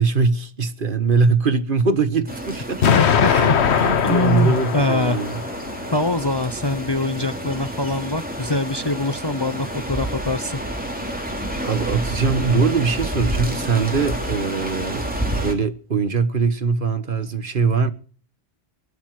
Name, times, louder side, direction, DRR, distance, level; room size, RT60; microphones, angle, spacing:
voice 1, 0.0-2.9 3.2-5.4 11.6-15.1 15.4-17.9, right 4 dB, 55° right, 1.5 m, -21 dB
sound 1, 2.3-15.5, right 1 dB, 10° right, 3.3 m, -29 dB
Explosion, 2.8-5.8, left 7 dB, 85° left, 1.2 m, -20 dB
voice 2, 2.9-3.6 4.0-5.2 5.9-10.6, left 2 dB, 25° left, 0.7 m, -24 dB
22.5 x 11.5 x 4.8 m
omnidirectional pair, 1.1 m